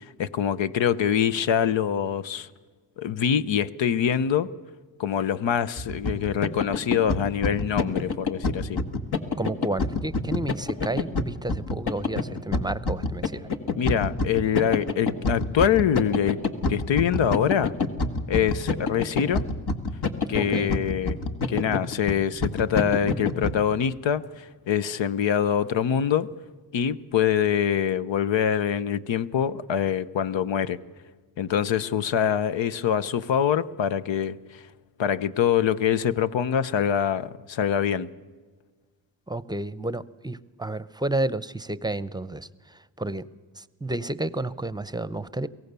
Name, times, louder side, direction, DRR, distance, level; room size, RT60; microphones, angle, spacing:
voice 1, 0.2-2.5 3.0-4.5 5.0-8.8 13.8-16.4 16.7-17.7 18.3-19.4 20.3-21.2 21.5-26.3 26.7-30.8 31.4-34.4 35.0-38.1, left 8 dB, 85° left, 15 dB, 0.8 m, -24 dB
sound 1, 5.8-23.5, left 3 dB, 60° left, 1.7 m, -27 dB
voice 2, 9.4-13.5 20.4-20.8 39.3-43.3 43.5-45.5, right 2 dB, 10° right, 17 dB, 0.7 m, -31 dB
23.0 x 17.5 x 6.8 m, 1.4 s
cardioid pair, 65°, 44 cm